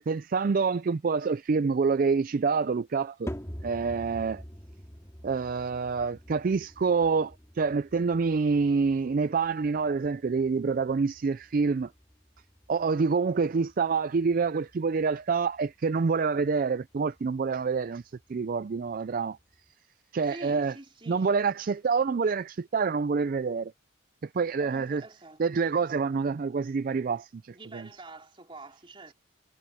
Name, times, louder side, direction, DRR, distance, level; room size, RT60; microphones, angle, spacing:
voice 1, 0.0-3.3 3.6-4.4 5.2-11.9 12.7-18.0 18.3-19.4 20.1-20.7 21.1-23.7 24.3-25.0 25.4-27.9, right 5 dB, 45° right, 0.4 m, -27 dB
sound 1, 3.3-19.7, equal, 15° left, 2.1 m, -47 dB
voice 2, 20.2-21.3 24.6-25.7 27.5-29.1, right 2 dB, 25° right, 3.7 m, -47 dB
head